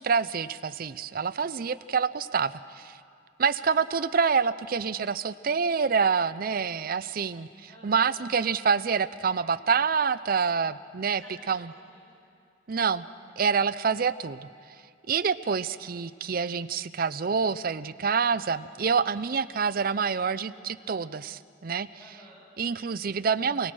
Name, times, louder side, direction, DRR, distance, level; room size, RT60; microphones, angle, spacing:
voice 1, 0.0-3.0 3.4-7.5 7.8-11.2 11.5-11.7 12.7-13.1 13.4-14.5 15.1-21.9 22.6-23.7, right 6 dB, 55° right, 14 dB, 0.5 m, -27 dB
voice 2, 7.7-8.3 11.0-12.3 22.0-22.5, equal, 20° left, -11 dB, 7.4 m, -53 dB
28.0 x 18.5 x 6.2 m, 2.3 s
head